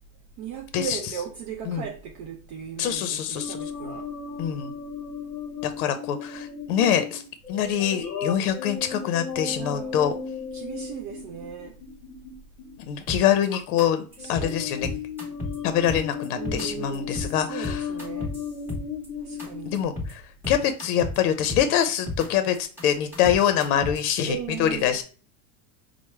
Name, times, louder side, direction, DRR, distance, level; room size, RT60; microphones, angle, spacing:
voice 1, 0.4-4.1 9.5-10.1 10.5-11.8 14.2-14.7 16.4-18.3 19.2-19.8 24.3-25.0, right 8 dB, 50° right, 0.5 m, -37 dB
voice 2, 2.8-3.6 4.4-4.7 5.6-7.2 7.5-10.1 12.8-14.9 15.6-17.8 19.7-25.0, left 9 dB, 85° left, 0.6 m, -25 dB
sound 1, 3.4-12.8 13.5-13.8 14.2-19.8, left 6 dB, 50° left, 0.9 m, -35 dB
sound 2, 13.1-13.4 13.8-13.9 14.1-14.5 14.8-15.6 15.9-16.6 16.9-17.3 17.6-19.1 19.4-19.5 19.7-20.1 20.4-21.2 21.5-22.3 22.5-24.1, left 2 dB, 5° right, 0.8 m, -32 dB
4.5 x 2.0 x 3.0 m
supercardioid pair, 155°, 44 cm